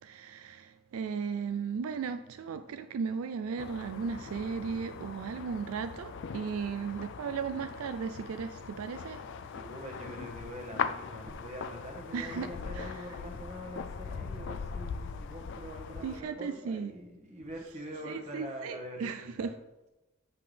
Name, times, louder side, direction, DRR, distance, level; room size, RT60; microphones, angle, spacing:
voice 1, 0.0-9.3 12.1-12.9 16.0-16.9 18.0-19.5, right 6 dB, 75° right, 0.3 m, -36 dB
sound 1, 3.6-16.2, left 6 dB, 55° left, 0.3 m, -40 dB
voice 2, 9.5-19.6, equal, 30° right, 1.2 m, -44 dB
7.7 x 5.7 x 3.3 m
head